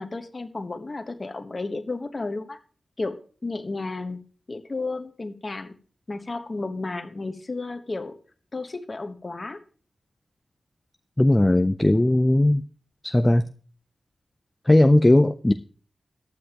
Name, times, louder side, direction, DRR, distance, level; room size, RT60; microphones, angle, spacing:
voice 1, 0.0-2.6 3.0-3.2 3.4-5.7 6.1-8.2 8.5-9.6, left 3 dB, 30° left, 1.2 m, -32 dB
voice 2, 11.2-12.6 13.0-13.4 14.7-15.5, left 1 dB, 10° left, 0.4 m, -18 dB
14.5 x 10.0 x 2.9 m
wide cardioid pair, 160°, 0 cm